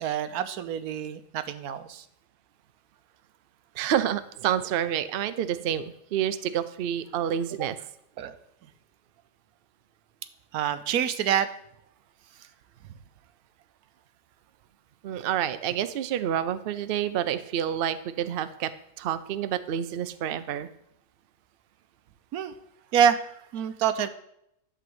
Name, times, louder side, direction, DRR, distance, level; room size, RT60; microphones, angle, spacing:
voice 1, 0.0-2.0 8.2-8.4 10.5-11.5 22.3-22.5 22.9-24.1, right 8 dB, 90° right, 12 dB, 1.2 m, -26 dB
voice 2, 3.7-7.8 15.0-18.7 19.0-20.7, right 10 dB, 60° right, 12 dB, 0.6 m, -28 dB
11.5 x 3.9 x 7.7 m, 0.76 s
omnidirectional pair, 1.5 m